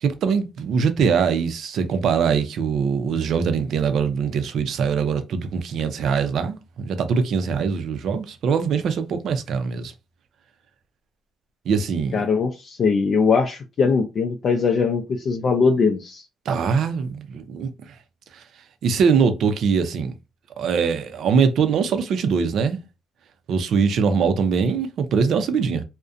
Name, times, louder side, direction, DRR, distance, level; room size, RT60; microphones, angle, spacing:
voice 1, 0.0-9.9 11.7-12.2 16.5-17.9 18.3-18.4 18.8-20.1 20.6-22.8 23.5-25.8, right 6 dB, 70° right, 0.4 m, -22 dB
voice 2, 12.1-16.2, left 5 dB, 55° left, 0.4 m, -21 dB
2.6 x 2.1 x 2.4 m
cardioid pair, 90°, 0 cm